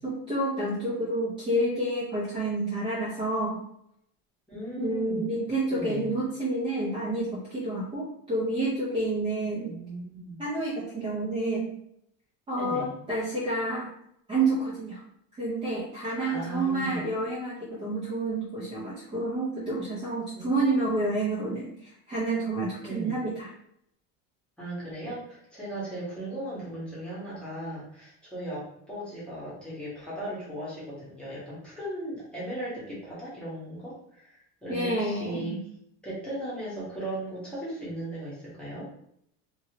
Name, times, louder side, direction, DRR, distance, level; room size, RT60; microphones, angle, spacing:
voice 1, 0.0-3.6 4.8-9.7 10.4-11.7 12.5-13.9 14.3-15.0 15.4-23.5 34.7-35.6, right 2 dB, 15° right, -9 dB, 0.7 m, -29 dB
voice 2, 4.5-5.3 5.7-6.1 9.6-10.4 12.6-12.9 16.2-17.0 20.3-20.8 22.8-23.2 24.6-35.6 36.0-38.9, right 1 dB, 5° left, -9 dB, 1.1 m, -37 dB
2.8 x 2.7 x 2.8 m, 0.71 s
cardioid pair, 170°, 30 cm